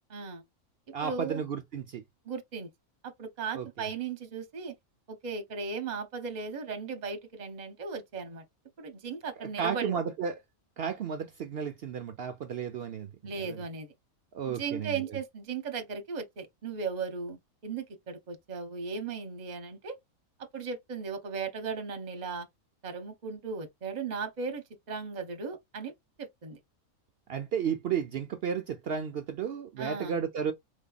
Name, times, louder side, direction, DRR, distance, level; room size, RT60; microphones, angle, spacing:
voice 1, 0.1-0.4 1.0-1.4 2.2-2.7 3.0-4.7 5.1-8.4 8.8-10.0 13.2-13.9 14.5-20.0 20.5-22.5 22.8-25.9 26.2-26.6 29.8-30.2, right 5 dB, 35° right, 0.8 m, -37 dB
voice 2, 0.9-2.0 3.5-3.7 9.4-10.4 10.8-13.6 14.3-15.0 27.3-30.5, right 7 dB, 65° right, 0.6 m, -33 dB
4.0 x 3.4 x 2.3 m
omnidirectional pair, 1.5 m